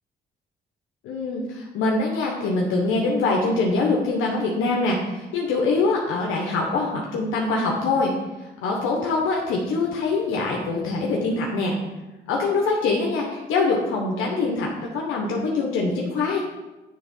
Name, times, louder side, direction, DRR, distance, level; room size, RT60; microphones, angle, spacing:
voice 1, 1.0-8.1 8.6-11.7 12.3-14.7 14.9-16.4, left 3 dB, 90° left, -1 dB, 1.1 m, -24 dB
9.7 x 3.5 x 5.4 m, 1.1 s
cardioid pair, 90°, 20 cm